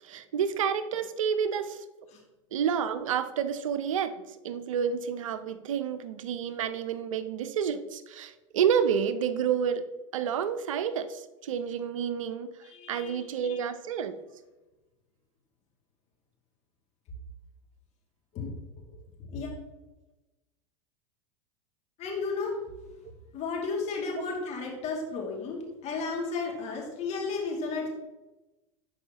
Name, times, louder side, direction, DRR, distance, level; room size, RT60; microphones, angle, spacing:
voice 1, 0.0-1.8 2.5-9.8 10.1-14.2, right 7 dB, 80° right, 12 dB, 0.6 m, -29 dB
voice 2, 12.7-13.6 18.3-18.5 18.8-18.9 19.2-19.5 22.0-22.6 23.3-27.9, left 4 dB, 40° left, -1 dB, 2.4 m, -33 dB
11.5 x 4.8 x 2.9 m, 1.1 s
hypercardioid pair, 100°, 17 cm